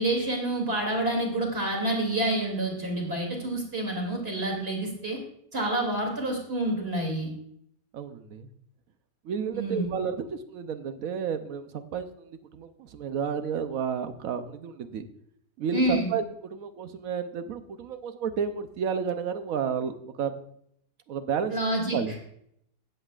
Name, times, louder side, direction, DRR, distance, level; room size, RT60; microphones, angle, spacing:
voice 1, 0.0-5.2 5.5-7.3 9.5-9.9 15.7-16.1 21.5-22.0, right 1 dB, 35° right, 0 dB, 3.0 m, -28 dB
voice 2, 7.9-8.5 9.2-15.1 15.6-16.2 16.5-20.3 21.1-21.5 21.9-22.1, right 7 dB, 60° right, 10 dB, 1.1 m, -31 dB
16.5 x 7.8 x 2.4 m, 0.72 s
omnidirectional pair, 1.8 m